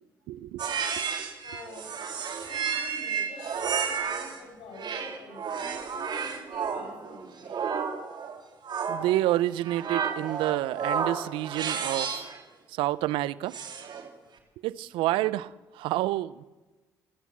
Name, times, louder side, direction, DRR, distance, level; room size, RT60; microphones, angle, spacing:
voice 1, 0.3-0.7 8.9-12.2 12.7-13.6 14.6-16.4, right 15 dB, 80° right, 0.6 m, -28 dB
sound 1, 0.6-4.4 4.8-12.4 13.5-14.1, right 6 dB, 60° right, 2.9 m, -32 dB
voice 2, 1.4-1.9 2.1-7.6 15.2-15.3, left 2 dB, 80° left, 6.7 m, -47 dB
29.0 x 14.0 x 7.5 m
hypercardioid pair, 50°, 9 cm